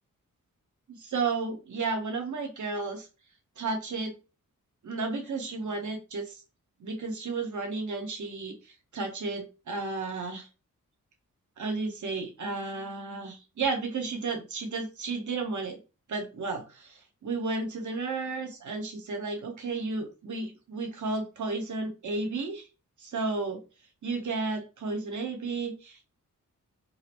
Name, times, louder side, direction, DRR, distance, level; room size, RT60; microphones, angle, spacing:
voice 1, 0.9-3.1 3.6-4.1 4.8-6.4 6.8-10.5 11.6-15.8 16.1-22.7 23.0-23.6 24.0-26.0, right 3 dB, 65° right, 3 dB, 1.0 m, -33 dB
3.7 x 2.0 x 2.9 m, 0.30 s
wide cardioid pair, 85°, 33 cm